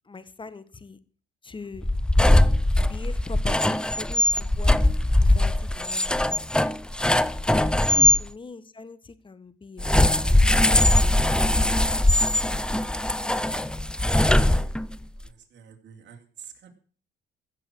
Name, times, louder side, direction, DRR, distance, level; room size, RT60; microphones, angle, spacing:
voice 1, 0.0-1.0 1.4-1.9 2.8-4.7 5.2-6.4 7.4-7.7 8.2-11.3, left 4 dB, 25° left, 14 dB, 1.4 m, -41 dB
sound 1, 1.8-8.2 9.8-15.0, left 1 dB, 5° left, 0.6 m, -21 dB
voice 2, 14.2-14.7 15.2-16.7, right 5 dB, 65° right, 4 dB, 3.0 m, -41 dB
15.5 x 7.7 x 6.3 m, 0.42 s
cardioid pair, 90°, 20 cm